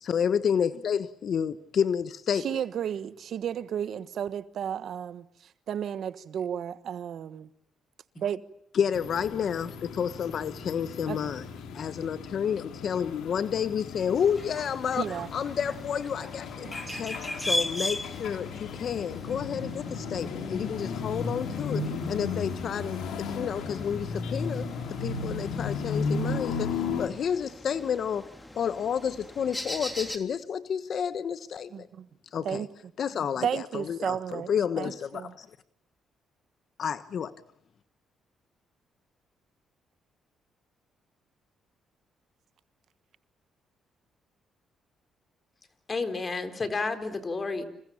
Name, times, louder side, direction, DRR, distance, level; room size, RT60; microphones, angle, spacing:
voice 1, 0.0-2.6 8.7-11.4 11.7-15.1 15.3-16.7 17.0-24.7 25.0-28.3 28.5-31.9 32.3-32.6 33.0-33.5 33.7-35.5 36.8-37.3, left 7 dB, 60° left, 1.2 m, -30 dB
voice 2, 2.3-7.5 8.2-8.4 11.1-11.3 15.0-15.3 16.6-17.0 31.7-32.1 32.4-32.7 33.4-34.5 34.8-35.3, right 9 dB, 65° right, 1.3 m, -33 dB
sound 1, 8.9-27.1, left 4 dB, 85° left, 2.9 m, -35 dB
sound 2, 14.2-30.2, left 1 dB, 10° left, 3.2 m, -39 dB
voice 3, 45.9-47.6, left 3 dB, 35° left, 4.0 m, -31 dB
29.5 x 27.0 x 7.2 m
cardioid pair, 90°, 0 cm